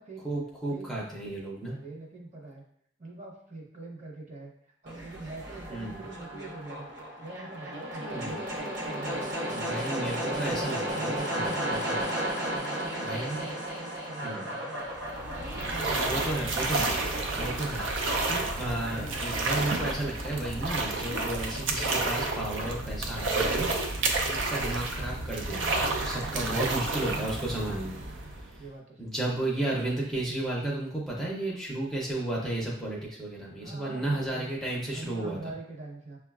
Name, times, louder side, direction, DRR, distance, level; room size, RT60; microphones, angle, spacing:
voice 1, 0.2-1.8 5.7-6.0 8.1-8.4 9.5-12.1 13.0-13.4 14.2-14.5 16.0-28.0 29.0-35.4, right 1 dB, ahead, -5 dB, 0.5 m, -33 dB
voice 2, 1.7-2.6 3.0-6.9 7.2-9.7 10.2-10.6 10.9-11.9 12.3-14.9 15.3-16.2 26.2-27.7 28.6-29.3 33.6-34.5 34.9-36.2, right 3 dB, 40° right, -1 dB, 0.8 m, -44 dB
sound 1, 4.9-20.9, equal, 65° right, 0.8 m, -35 dB
sound 2, 14.9-28.7, right 2 dB, 85° right, 0.5 m, -30 dB
6.1 x 2.2 x 2.3 m, 0.68 s
head